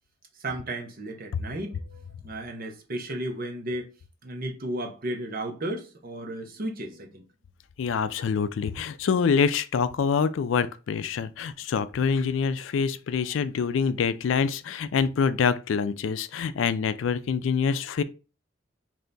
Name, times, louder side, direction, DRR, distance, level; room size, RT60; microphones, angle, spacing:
voice 1, 0.4-3.9 4.2-7.2, right 1 dB, 50° right, 0.8 m, -34 dB
voice 2, 7.8-18.0, left 6 dB, 75° left, 0.4 m, -25 dB
3.3 x 2.7 x 3.9 m
head